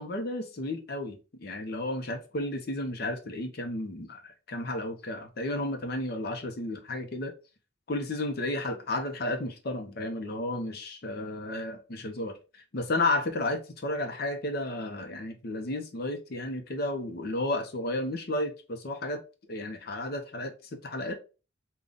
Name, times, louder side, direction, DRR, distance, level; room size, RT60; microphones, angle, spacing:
voice 1, 0.0-7.3 7.9-12.3 12.7-19.2 19.5-21.1, left 2 dB, 50° left, 5 dB, 0.6 m, -32 dB
3.8 x 2.3 x 3.5 m, 0.32 s
head